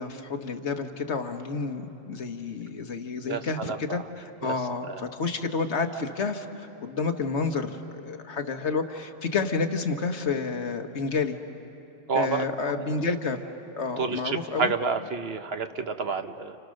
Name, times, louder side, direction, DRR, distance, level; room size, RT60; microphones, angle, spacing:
voice 1, 0.0-11.4 12.1-13.4 13.8-14.7, left 4 dB, 70° left, 6 dB, 1.6 m, -30 dB
voice 2, 3.3-4.0 4.4-4.5 4.9-5.0 12.1-13.0 14.0-16.6, right 4 dB, 60° right, 8 dB, 1.2 m, -30 dB
30.0 x 29.5 x 6.5 m, 2.9 s
omnidirectional pair, 1.2 m